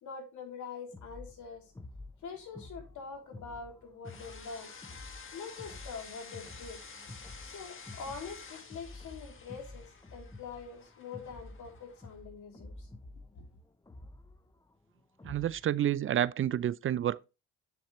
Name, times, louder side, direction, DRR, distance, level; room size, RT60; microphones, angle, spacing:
voice 1, 0.0-1.6 2.2-4.7 5.3-6.8 7.4-12.9 13.3-13.4, left 5 dB, 75° left, 3.0 m, -44 dB
sound 1, 0.9-15.7, left 2 dB, 10° left, 0.7 m, -50 dB
sound 2, 4.0-12.2, left 5 dB, 40° left, 1.7 m, -51 dB
voice 2, 15.2-17.3, right 11 dB, 45° right, 0.4 m, -29 dB
7.9 x 7.3 x 3.0 m
cardioid pair, 90°, 30 cm